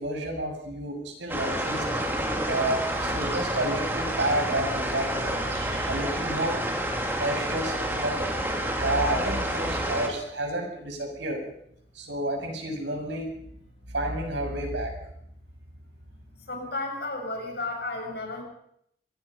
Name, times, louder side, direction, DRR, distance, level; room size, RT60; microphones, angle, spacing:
voice 1, 0.0-1.8 2.5-6.6 7.2-8.2 8.8-11.4 11.9-13.3 13.9-14.9, right 1 dB, 85° right, 3 dB, 7.2 m, -30 dB
sound 1, 1.3-10.1, right 1 dB, 10° right, 3.1 m, -29 dB
voice 2, 16.4-18.4, left 2 dB, 65° left, 2 dB, 7.6 m, -33 dB
25.0 x 19.0 x 5.6 m, 0.70 s
head